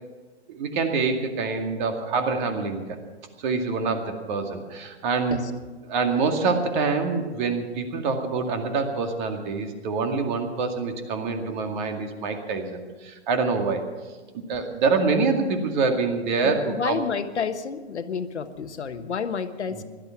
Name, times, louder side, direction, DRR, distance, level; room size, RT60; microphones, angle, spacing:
voice 1, 0.5-3.0 3.4-5.4 5.8-13.9 14.3-17.0 19.7-19.8, right 4 dB, 45° right, 5 dB, 2.2 m, -26 dB
voice 2, 16.4-19.8, left 6 dB, 80° left, 9 dB, 1.3 m, -30 dB
16.5 x 12.0 x 6.0 m, 1.3 s
hypercardioid pair, 130°, 34 cm